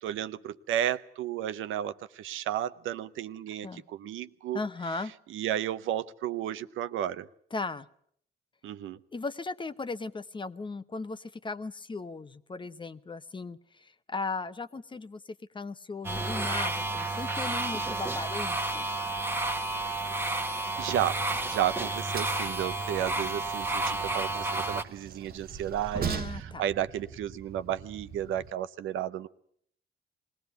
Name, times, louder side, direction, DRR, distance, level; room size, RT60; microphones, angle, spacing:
voice 1, 0.0-4.6 5.3-7.3 8.6-9.0 20.8-29.3, right 11 dB, 80° right, 13 dB, 0.8 m, -33 dB
voice 2, 4.5-5.1 7.5-7.9 9.1-15.2 15.5-18.9 25.9-26.6, left 3 dB, 25° left, 13 dB, 0.8 m, -37 dB
sound 1, 16.0-24.8, right 2 dB, 10° right, 1.3 m, -31 dB
Train, 20.8-28.5, right 7 dB, 50° right, 1.0 m, -41 dB
20.5 x 17.0 x 8.3 m, 0.66 s
cardioid pair, 90°, 20 cm